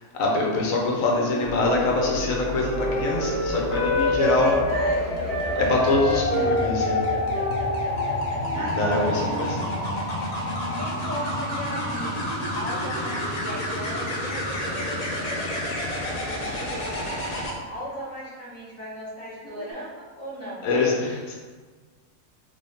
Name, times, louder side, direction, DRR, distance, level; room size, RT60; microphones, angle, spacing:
voice 1, 0.0-4.5 5.6-7.0 8.5-9.0 9.4-9.8 20.6-21.3, left 2 dB, 70° left, -1 dB, 1.0 m, -24 dB
Wind instrument woodwind instrument, 1.1-5.0 5.3-8.8 9.1-9.7, equal, 60° right, 0.5 m, -29 dB
sound 1, 1.4-17.5 19.4-19.7, left 1 dB, 90° left, 0.3 m, -29 dB
voice 2, 4.2-5.7 8.2-9.3 10.7-15.5 15.9-20.7, equal, 15° right, -10 dB, 0.8 m, -37 dB
3.4 x 3.1 x 2.7 m, 1.4 s
omnidirectional pair, 1.5 m